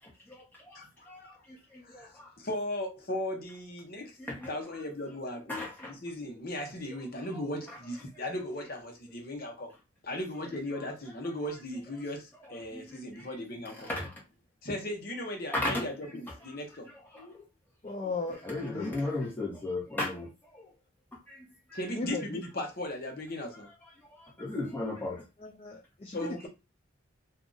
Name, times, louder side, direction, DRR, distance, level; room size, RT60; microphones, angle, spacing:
voice 1, 0.7-1.4 1.8-4.2 4.5-9.7 10.0-13.9 14.6-16.9 21.7-23.7 26.1-26.5, left 1 dB, 45° left, 0.9 m, -37 dB
voice 2, 5.5-5.9 12.7-12.8 13.9-14.1 15.5-15.8 17.1-17.2 18.4-20.3 24.4-25.2, left 2 dB, 10° left, 1.0 m, -33 dB
voice 3, 17.8-18.9 21.9-22.4 25.4-26.5, left 3 dB, 30° left, 0.4 m, -37 dB
2.7 x 2.4 x 3.8 m
head